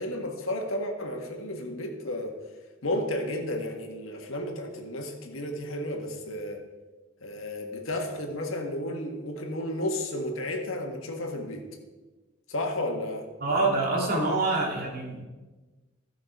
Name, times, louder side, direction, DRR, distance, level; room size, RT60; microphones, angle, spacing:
voice 1, 0.0-2.3 2.8-6.6 7.2-11.6 12.5-13.3, left 1 dB, 85° left, 3 dB, 1.6 m, -32 dB
voice 2, 13.4-15.2, right 2 dB, 45° right, -2 dB, 2.6 m, -26 dB
15.0 x 5.9 x 4.6 m, 1.2 s
head